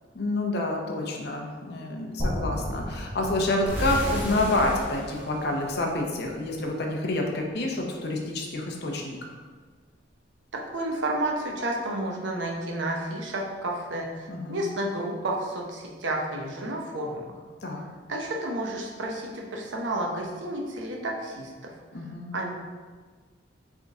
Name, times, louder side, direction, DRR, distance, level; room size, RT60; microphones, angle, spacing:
voice 1, 0.1-9.2 14.3-14.6 17.6-17.8 21.9-22.3, left 2 dB, 60° left, 1 dB, 0.7 m, -28 dB
sound 1, 2.2-6.2, equal, 30° left, 1.2 m, -35 dB
sound 2, 3.7-6.5, equal, 10° right, 0.8 m, -33 dB
voice 2, 10.5-17.3 18.1-21.7 22.3-22.5, right 1 dB, 85° right, 0 dB, 0.8 m, -31 dB
4.0 x 3.6 x 3.5 m, 1.5 s
head